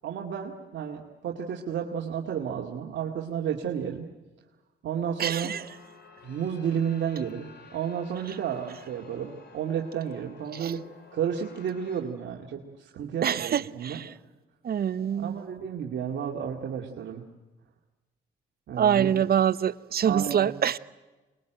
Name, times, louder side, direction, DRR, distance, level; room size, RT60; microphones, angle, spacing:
voice 1, 0.0-4.1 4.8-5.6 6.2-10.9 11.1-14.0 15.1-17.2 18.7-19.1 20.1-20.5, right 8 dB, 70° right, 2.2 m, -32 dB
voice 2, 5.2-5.6 10.5-10.7 13.2-14.1 14.6-15.4 18.8-20.8, right 9 dB, 50° right, 0.8 m, -25 dB
sound 1, 5.5-12.0, left 5 dB, 60° left, 5.0 m, -52 dB
24.0 x 21.0 x 9.2 m
cardioid pair, 90°, 20 cm